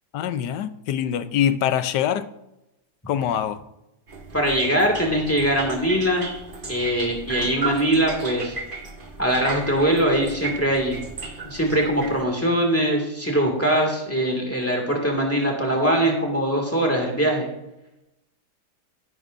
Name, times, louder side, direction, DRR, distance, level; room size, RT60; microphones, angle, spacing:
voice 1, 0.1-2.3 3.1-3.6, left 9 dB, 90° left, 1.3 m, -24 dB
sound 1, 4.1-12.2, right 3 dB, 35° right, 1.1 m, -35 dB
voice 2, 4.3-6.3 6.7-8.5 9.2-11.0 11.4-17.5, right 1 dB, 10° left, 2.0 m, -22 dB
13.5 x 11.0 x 2.6 m
omnidirectional pair, 1.8 m